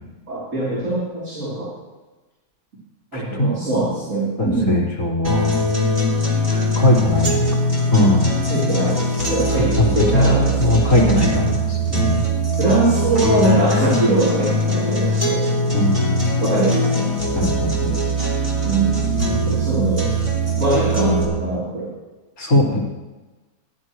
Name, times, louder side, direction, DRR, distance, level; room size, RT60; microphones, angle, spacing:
voice 1, 0.3-1.7 3.1-4.8 8.5-11.3 12.6-15.4 16.4-17.2 18.6-20.1 20.6-21.9, right 2 dB, 55° right, -9 dB, 4.0 m, -22 dB
voice 2, 3.1-3.7 4.4-5.6 6.5-7.5 7.9-8.3 9.8-12.3 15.7-16.2 17.4-17.9 22.4-22.8, left 1 dB, 70° left, -7 dB, 4.2 m, -20 dB
sound 1, 5.2-21.2, equal, 20° right, 3.3 m, -21 dB
17.5 x 11.5 x 3.2 m, 1.2 s
omnidirectional pair, 1.6 m